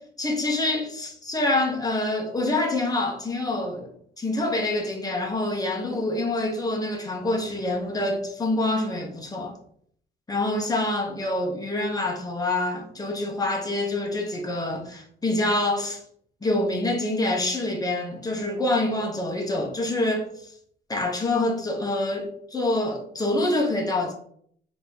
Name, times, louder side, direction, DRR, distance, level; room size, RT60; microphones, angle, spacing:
voice 1, 0.2-9.5 10.3-16.0 16.4-20.5 20.9-24.1, left 2 dB, 20° left, 1.2 m, -26 dB
3.9 x 3.0 x 4.0 m
cardioid pair, 90°, 20 cm